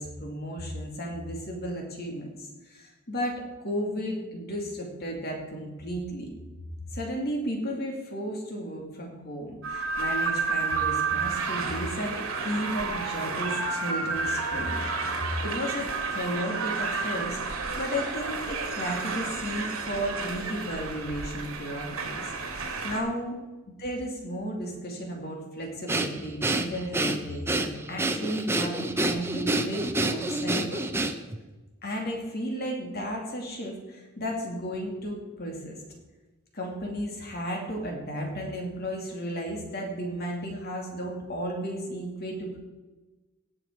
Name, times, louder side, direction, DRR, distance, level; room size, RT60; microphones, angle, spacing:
voice 1, 0.0-6.3 6.9-14.8 15.4-22.6 22.8-23.4 23.8-30.8 31.8-35.8 36.5-42.6, equal, 50° left, 0 dB, 2.4 m, -34 dB
sound 1, 9.6-23.0, right 4 dB, 75° right, 2.1 m, -31 dB
Breathing, 25.9-31.4, right 2 dB, 10° right, 0.8 m, -28 dB
18.0 x 6.3 x 4.6 m, 1.2 s
head